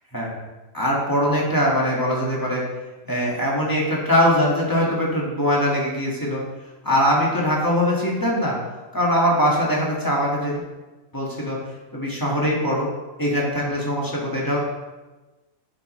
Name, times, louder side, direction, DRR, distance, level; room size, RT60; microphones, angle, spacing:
voice 1, 0.7-2.6 3.1-6.4 6.8-8.6 8.9-10.6 11.1-11.6 11.9-12.9 13.2-14.6, equal, 15° left, -4 dB, 1.6 m, -22 dB
10.5 x 5.2 x 3.1 m, 1.2 s
omnidirectional pair, 1.4 m